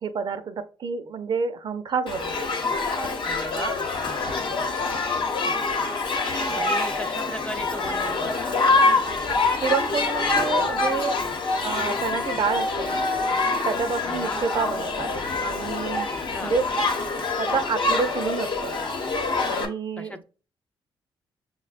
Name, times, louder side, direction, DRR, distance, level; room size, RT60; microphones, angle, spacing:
voice 1, 0.0-2.5 9.3-11.2 11.6-13.0 13.4-15.1 15.4-16.1 16.4-16.7 17.4-18.7 19.5-20.2, right 5 dB, 55° right, 0.5 m, -28 dB
Shout / Human group actions, 2.1-19.7, left 3 dB, 60° left, 0.9 m, -25 dB
voice 2, 3.2-3.8 6.6-8.6 14.1-14.4 16.3-16.5 20.0-20.2, left 1 dB, 15° left, 0.4 m, -36 dB
6.1 x 2.1 x 2.4 m
cardioid pair, 80°, 9 cm